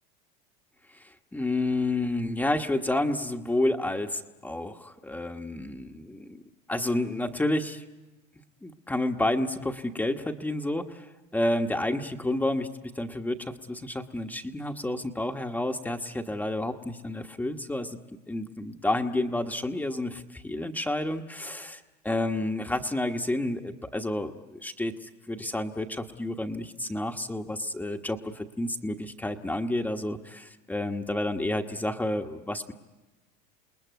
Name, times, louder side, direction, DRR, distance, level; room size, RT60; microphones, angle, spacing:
voice 1, 0.9-6.4 6.7-7.8 8.6-18.0 18.3-32.7, left 1 dB, 10° left, 4 dB, 1.3 m, -30 dB
28.5 x 20.0 x 9.3 m, 1.1 s
supercardioid pair, 105°, 21 cm